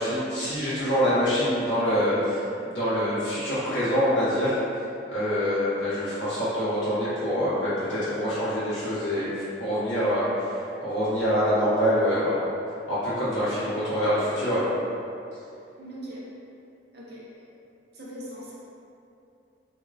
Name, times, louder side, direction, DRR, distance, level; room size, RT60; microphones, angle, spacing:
voice 1, 0.0-4.5 5.1-12.4 12.9-14.6, equal, 80° left, -12 dB, 1.3 m, -25 dB
voice 2, 15.8-16.3 16.9-17.3 17.9-18.7, equal, 60° right, -6 dB, 0.7 m, -40 dB
3.6 x 2.2 x 2.6 m, 2.7 s
head